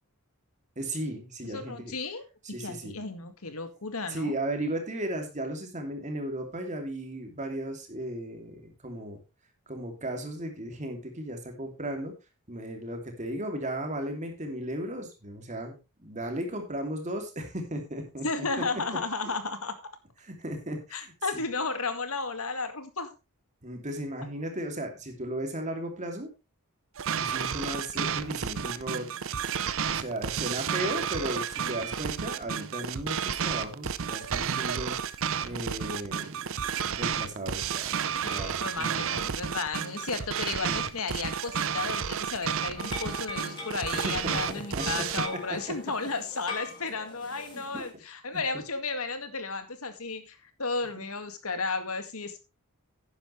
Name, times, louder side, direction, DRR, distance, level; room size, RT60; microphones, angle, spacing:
voice 1, 0.8-1.9 2.4-3.0 4.1-9.2 9.7-12.1 12.5-18.5 20.2-21.4 23.6-26.3 27.2-29.1 29.9-35.0 35.4-38.0 38.3-39.2 40.6-40.8 44.0-44.4 44.7-44.9 45.5-45.6 47.7-47.8, right 1 dB, 35° right, 4 dB, 2.9 m, -35 dB
voice 2, 1.5-4.3 18.2-19.7 20.9-23.1 24.2-24.3 31.6-31.9 38.2-52.4, left 4 dB, 70° left, 9 dB, 2.0 m, -34 dB
sound 1, 27.0-45.3, right 7 dB, 65° right, 0.7 m, -31 dB
sound 2, 42.8-47.9, left 3 dB, 20° left, 3.5 m, -42 dB
11.0 x 10.0 x 3.2 m, 0.27 s
head